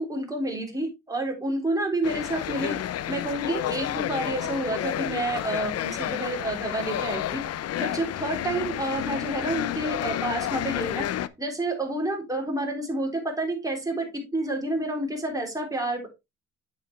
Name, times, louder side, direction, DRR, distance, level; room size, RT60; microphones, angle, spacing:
voice 1, 0.0-2.8 3.1-7.4 7.8-11.1 11.4-14.1 14.3-16.1, right 1 dB, 10° right, 1 dB, 3.6 m, -29 dB
sound 1, 2.0-11.3, left 12 dB, 55° left, 0.6 m, -30 dB
8.0 x 7.2 x 3.2 m, 0.22 s
cardioid pair, 90°, 30 cm